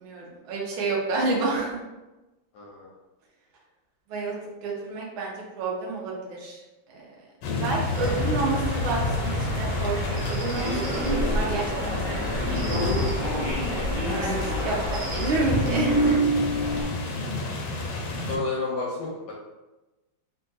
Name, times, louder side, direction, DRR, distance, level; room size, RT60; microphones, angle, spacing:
voice 1, 0.0-1.8 4.1-4.4 4.6-6.6 6.9-7.1 7.6-10.0 10.3-12.5 14.2-14.3 14.6-16.2, right 3 dB, 85° right, -2 dB, 1.5 m, -29 dB
voice 2, 2.5-2.9 14.0-14.3 18.3-19.3, left 3 dB, 70° left, -3 dB, 1.0 m, -31 dB
sound 1, 7.4-18.4, left 3 dB, 90° left, 1.5 m, -30 dB
sound 2, 8.0-16.2, left 1 dB, 65° right, 1.2 m, -32 dB
sound 3, 10.5-16.8, right 1 dB, 45° right, 1.3 m, -28 dB
3.8 x 2.3 x 2.6 m, 1.1 s
omnidirectional pair, 2.2 m